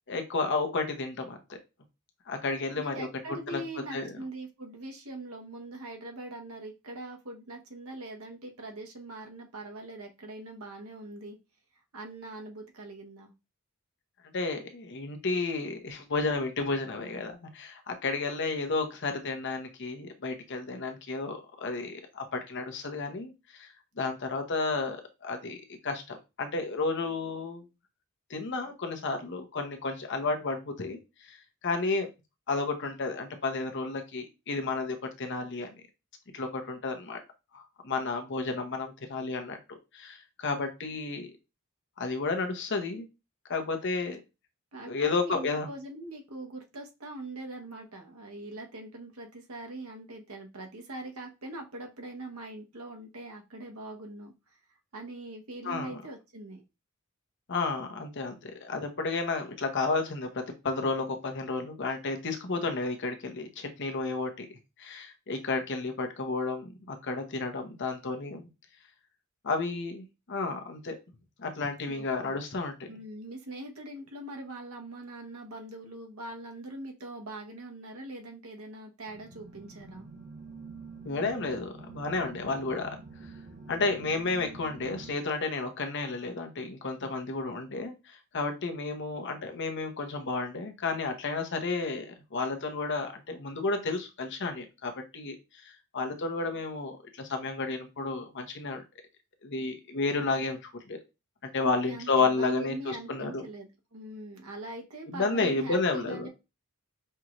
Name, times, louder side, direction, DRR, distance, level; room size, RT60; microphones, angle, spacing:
voice 1, 0.1-1.4 2.3-3.1 3.5-3.6 3.9-4.1 14.3-27.6 28.3-31.4 31.6-32.1 32.5-35.7 36.3-37.2 37.5-41.3 42.0-43.1 43.5-44.2 44.9-45.7 55.6-56.0 57.5-64.5 64.8-68.5 69.4-71.0 71.4-72.9 81.0-82.9 83.7-98.8 99.4-100.6 100.9-101.0 101.4-103.4 105.1-106.3, left 3 dB, 55° left, 5 dB, 0.9 m, -32 dB
voice 2, 2.8-11.4 11.9-13.3 44.7-54.3 54.9-56.6 71.9-72.3 72.9-80.1 101.6-106.3, right 2 dB, 85° right, 2 dB, 1.2 m, -42 dB
sound 1, 79.1-85.1, right 3 dB, 35° right, 0.9 m, -46 dB
5.5 x 2.5 x 3.0 m, 0.26 s
head